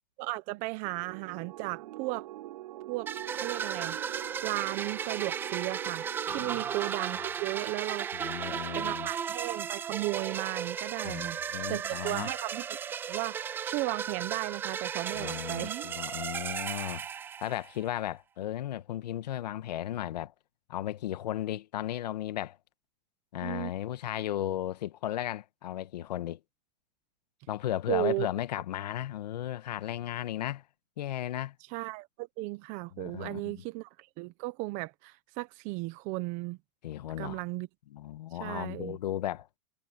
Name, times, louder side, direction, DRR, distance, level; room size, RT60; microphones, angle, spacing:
voice 1, 0.2-2.3 2.9-4.0 4.4-6.1 6.3-8.1 8.7-11.4 11.7-12.6 13.1-15.9 23.4-23.7 27.9-28.3 31.7-36.6 37.2-37.7 38.4-39.0, right 21 dB, 35° right, 1.0 m, -35 dB
sound 1, 0.8-6.9, right 16 dB, 65° right, 7.8 m, -45 dB
sound 2, 3.1-17.8, right 7 dB, 10° right, 0.3 m, -35 dB
voice 2, 6.3-6.6 7.1-7.3 8.1-9.1 11.0-12.3 15.1-17.0 17.4-20.3 20.7-22.6 23.3-26.4 27.5-30.6 31.0-31.5 32.9-33.6 36.8-37.4 37.9-39.5, left 12 dB, 80° left, 1.5 m, -35 dB
supercardioid pair, 150°, 21 cm